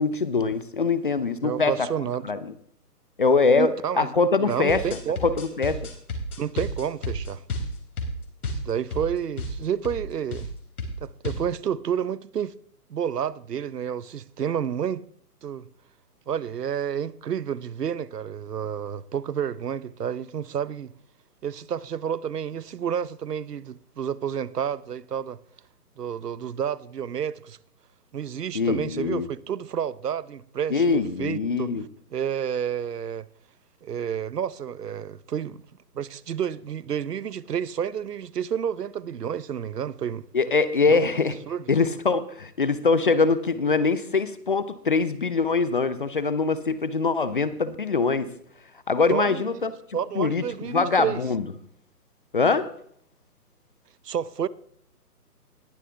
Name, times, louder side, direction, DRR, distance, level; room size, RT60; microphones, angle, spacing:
voice 1, 0.0-1.7 2.3-2.5 3.2-4.8 5.2-5.8 28.5-29.3 30.7-31.8 40.3-41.4 41.7-48.3 48.9-49.7 50.2-51.4 52.3-52.7, left 4 dB, 35° left, 0.5 m, -23 dB
voice 2, 1.4-2.3 3.6-4.1 4.4-5.2 6.4-7.4 8.6-10.5 11.0-12.6 12.9-15.0 15.4-15.7 16.3-20.9 21.4-25.4 26.0-27.6 28.1-31.7 32.1-33.3 33.8-35.6 35.9-40.2 40.9-41.1 41.5-41.6 49.1-49.5 49.9-51.2 54.0-54.5, right 8 dB, 75° right, 0.9 m, -30 dB
sound 1, 4.5-9.1 9.4-9.6 9.8-10.0 10.3-10.5 10.8-11.5, left 1 dB, 65° left, 3.9 m, -31 dB
19.5 x 7.4 x 3.4 m
hypercardioid pair, 155°, 48 cm